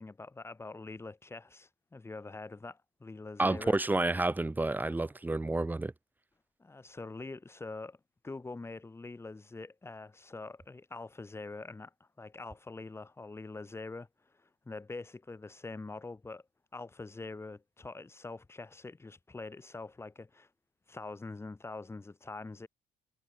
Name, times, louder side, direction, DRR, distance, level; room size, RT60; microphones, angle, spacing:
voice 1, 0.0-3.8 6.6-8.0 8.2-16.4 16.7-20.5 20.9-22.7, left 3 dB, 15° left, 5.8 m, -44 dB
voice 2, 3.4-5.9, right 2 dB, 10° right, 1.9 m, -30 dB
cardioid pair, 140°, 17 cm